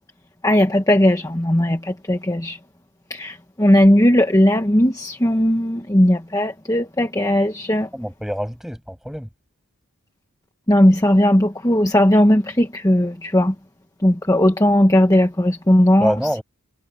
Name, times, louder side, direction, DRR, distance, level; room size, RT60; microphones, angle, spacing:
voice 1, 0.4-2.6 3.1-7.9 10.7-13.5 14.0-16.1, left 1 dB, 15° left, 1.3 m, -17 dB
voice 2, 7.9-9.3 16.0-16.4, equal, ahead, 6.6 m, -25 dB
head